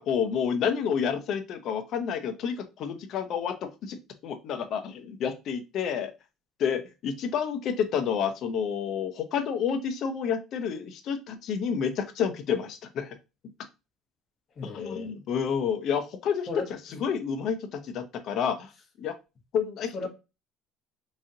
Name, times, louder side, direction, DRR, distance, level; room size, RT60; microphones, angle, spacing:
voice 1, 0.0-6.1 6.6-13.2 14.6-16.5 16.9-18.7 19.0-19.2 19.5-19.9, left 7 dB, 55° left, 0.7 m, -29 dB
voice 2, 14.6-15.1 16.5-16.7 19.9-20.1, left 3 dB, 35° left, 1.1 m, -35 dB
3.7 x 3.1 x 2.7 m
cardioid pair, 130°, 0 cm